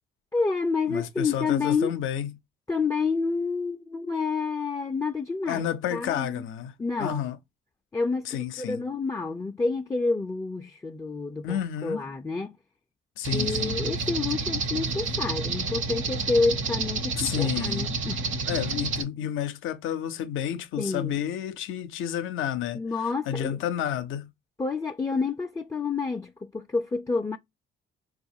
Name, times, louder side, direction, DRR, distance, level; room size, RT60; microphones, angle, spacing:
voice 1, 0.3-1.9 2.7-6.5 6.8-7.3 7.9-12.6 13.3-18.3 20.8-21.2 22.7-23.6 24.6-27.4, left 4 dB, 15° left, 0.3 m, -29 dB
voice 2, 0.9-2.3 5.5-6.7 7.0-7.4 8.3-8.8 11.4-12.0 13.2-13.8 17.1-17.9 18.5-22.8 23.3-24.3, left 10 dB, 85° left, 0.5 m, -30 dB
sound 1, 13.2-19.0, right 4 dB, 75° right, 0.9 m, -29 dB
4.2 x 2.3 x 2.6 m
cardioid pair, 90°, 20 cm